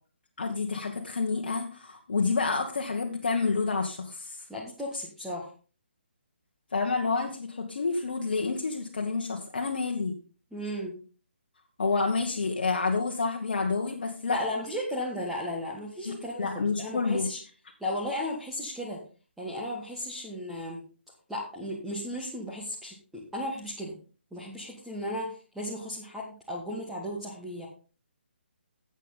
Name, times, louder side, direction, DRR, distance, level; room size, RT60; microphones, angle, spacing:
voice 1, 0.4-4.4 6.7-10.1 11.8-14.4 16.0-16.1 16.4-17.3, left 4 dB, 50° left, 1 dB, 1.5 m, -29 dB
voice 2, 4.5-5.5 10.5-10.9 14.3-17.4 17.8-19.0 19.4-20.8 21.3-23.9 24.3-27.7, left 1 dB, 5° right, -5 dB, 1.6 m, -35 dB
12.5 x 8.3 x 3.9 m, 0.37 s
figure-of-eight pair, 140°, 6 cm